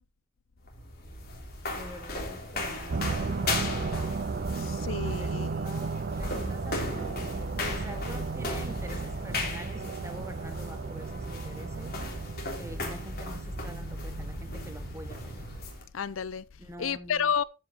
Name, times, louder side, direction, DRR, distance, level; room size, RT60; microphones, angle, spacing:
sound 1, 0.6-15.9, left 2 dB, 50° left, 3.1 m, -37 dB
voice 1, 1.7-4.5 5.1-7.2 7.7-12.0 12.6-15.5 16.6-17.3, right 1 dB, 15° right, 1.1 m, -46 dB
sound 2, 2.9-15.6, right 4 dB, 50° right, 0.5 m, -35 dB
voice 2, 4.6-5.5 15.9-16.4 16.8-17.4, left 7 dB, 70° left, 0.6 m, -30 dB
14.0 x 5.4 x 4.2 m
head